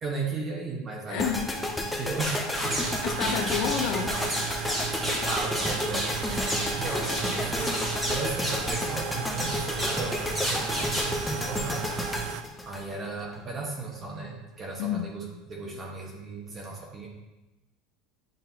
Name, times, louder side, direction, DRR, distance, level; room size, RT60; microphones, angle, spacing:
voice 1, 0.0-2.9 3.3-3.5 4.9-6.1 6.4-12.0 12.7-17.1, right 3 dB, 25° right, -1 dB, 1.1 m, -36 dB
voice 2, 1.1-1.5 2.7-4.1 14.8-15.1, left 9 dB, 65° left, 6 dB, 0.7 m, -30 dB
sound 1, 1.2-13.4, left 1 dB, 10° left, 0.7 m, -32 dB
sound 2, 2.2-2.9 3.2-8.9 9.4-10.0 10.3-11.1, equal, 10° right, 2.0 m, -31 dB
sound 3, 2.6-12.4, right 10 dB, 65° right, 0.4 m, -36 dB
8.9 x 3.9 x 2.8 m, 1.0 s
supercardioid pair, 135°, 0 cm